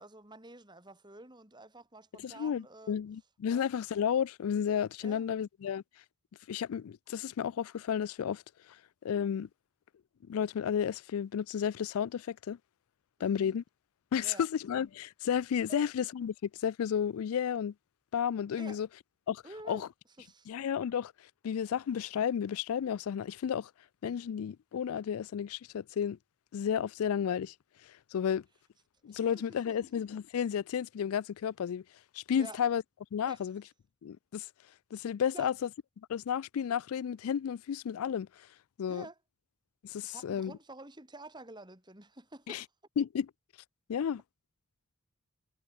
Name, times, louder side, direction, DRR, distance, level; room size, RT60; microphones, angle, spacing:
voice 1, 0.0-3.0 3.5-3.7 5.0-5.3 13.2-13.6 14.2-14.5 15.7-15.9 18.6-18.8 19.4-19.9 20.2-20.5 29.1-29.4 32.4-32.6 33.3-33.4 35.3-35.5 38.9-39.2 40.0-42.6, right 2 dB, 20° right, 4.1 m, -49 dB
voice 2, 2.2-5.8 6.5-8.4 8.7-8.8 9.0-9.5 10.3-12.6 13.2-13.6 14.1-17.7 18.1-18.9 19.3-19.9 20.5-21.1 21.4-23.7 24.0-26.2 26.5-27.5 27.8-28.4 29.0-31.8 32.1-32.8 33.1-33.6 34.0-34.5 34.9-35.7 36.1-38.5 38.8-39.1 39.8-40.5 42.5-42.6 43.0-43.3 43.9-44.2, left 8 dB, 75° left, 0.3 m, -32 dB
head